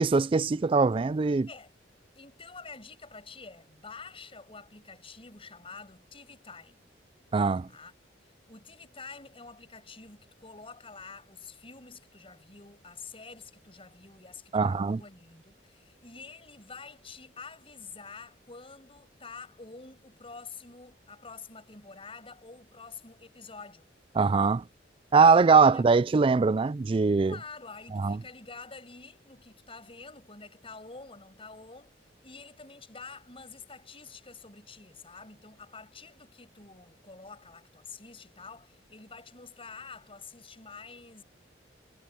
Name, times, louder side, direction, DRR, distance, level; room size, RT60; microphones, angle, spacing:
voice 1, 0.0-1.5 7.3-7.7 14.5-15.0 24.2-24.6 25.1-27.4 27.9-28.2, right 4 dB, 30° right, 0.3 m, -22 dB
voice 2, 2.2-6.8 7.6-7.9 8.5-23.9 25.6-25.9 27.3-32.0 32.2-41.2, left 4 dB, 30° left, 7.5 m, -48 dB
head